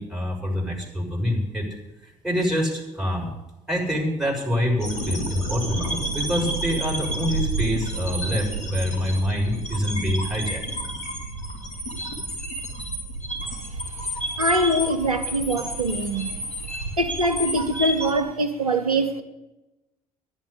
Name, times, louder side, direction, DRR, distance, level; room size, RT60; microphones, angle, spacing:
voice 1, 0.0-1.7 2.0-3.3 3.7-10.6, equal, ahead, 6.5 m, -26 dB
sound 1, 4.8-18.1, right 1 dB, 75° left, 3.0 m, -30 dB
voice 2, 14.4-16.3 17.0-19.2, right 1 dB, 90° right, 0.8 m, -23 dB
10.5 x 10.5 x 8.4 m
figure-of-eight pair, 45°, 18 cm